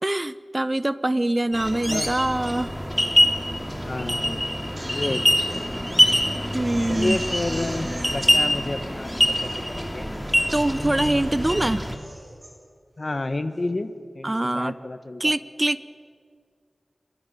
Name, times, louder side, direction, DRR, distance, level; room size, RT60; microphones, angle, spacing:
voice 1, 0.0-2.7 6.5-7.2 10.5-11.8 14.2-14.8 15.2-15.8, right 1 dB, 30° right, 15 dB, 0.9 m, -24 dB
sound 1, 1.5-12.0, equal, ahead, 2.9 m, -24 dB
voice 2, 1.7-2.1 3.8-5.2 5.5-5.9 6.9-10.1 10.3-10.5 13.0-13.9 14.1-15.3, left 2 dB, 50° left, 10 dB, 1.4 m, -31 dB
Crying sobbing, 4.6-5.6 6.1-6.2 6.6-8.1 8.8-8.9 9.2-9.6 10.1-10.5 10.9-11.4 11.8-12.5 13.0-13.3, right 1 dB, 50° right, 7.7 m, -43 dB
26.0 x 22.5 x 6.9 m, 2.1 s
wide cardioid pair, 45°, 0 cm